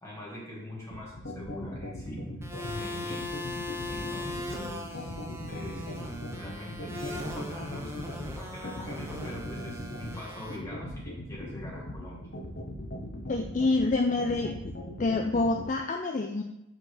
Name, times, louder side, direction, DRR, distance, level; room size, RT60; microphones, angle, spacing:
voice 1, 0.0-2.3 2.6-3.5 3.8-5.1 5.4-12.3, left 1 dB, 15° left, -6 dB, 2.1 m, -43 dB
sound 1, 0.9-15.6, left 1 dB, 55° left, 0.9 m, -39 dB
sound 2, 2.4-10.6, left 1 dB, 10° right, 0.7 m, -39 dB
voice 2, 13.3-14.7 15.0-16.4, left 3 dB, 40° left, 3 dB, 0.4 m, -27 dB
5.5 x 4.3 x 6.2 m, 0.88 s
head